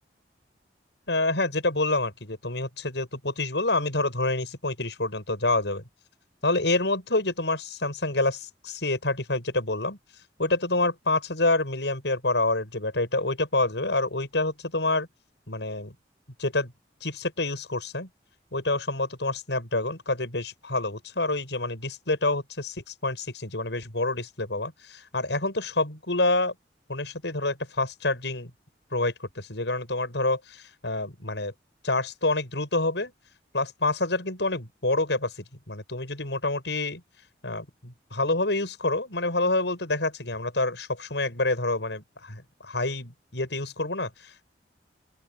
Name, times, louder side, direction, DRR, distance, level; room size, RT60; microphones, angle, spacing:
voice 1, 1.1-5.8 6.4-10.0 10.4-15.1 15.5-15.9 16.4-16.7 17.0-18.1 18.5-26.5 26.9-28.5 28.9-31.5 31.8-33.1 33.5-37.0 37.4-44.4, left 2 dB, 85° left, 6.5 m, -27 dB
open air
head